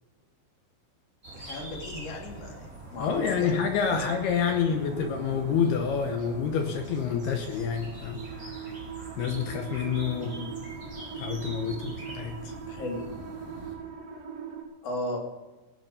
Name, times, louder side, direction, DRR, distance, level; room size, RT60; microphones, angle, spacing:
sound 1, 1.2-13.7, right 1 dB, 20° right, 4.0 m, -44 dB
voice 1, 1.3-4.0 4.7-5.0 10.1-10.5 12.7-13.0 14.8-15.2, left 1 dB, 40° left, 0 dB, 2.7 m, -36 dB
voice 2, 3.0-8.2 9.2-10.3 11.2-12.5, left 7 dB, 80° left, 4 dB, 2.4 m, -28 dB
sound 2, 4.7-14.6, right 6 dB, 50° right, 3.1 m, -41 dB
17.0 x 8.8 x 6.7 m, 1.2 s
omnidirectional pair, 5.9 m